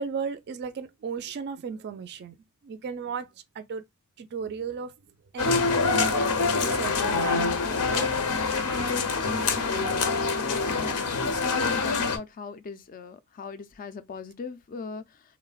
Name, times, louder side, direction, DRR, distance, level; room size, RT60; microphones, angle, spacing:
voice 1, 0.0-2.4 2.6-3.3 3.5-3.8 4.2-4.9 5.3-8.1 8.4-10.1 11.1-11.5, right 6 dB, 50° right, 0.3 m, -36 dB
sound 1, 5.4-12.2, left 4 dB, 85° left, 0.6 m, -25 dB
voice 2, 10.4-11.1 11.5-15.0, left 4 dB, 40° left, 0.3 m, -39 dB
3.2 x 2.1 x 2.2 m
head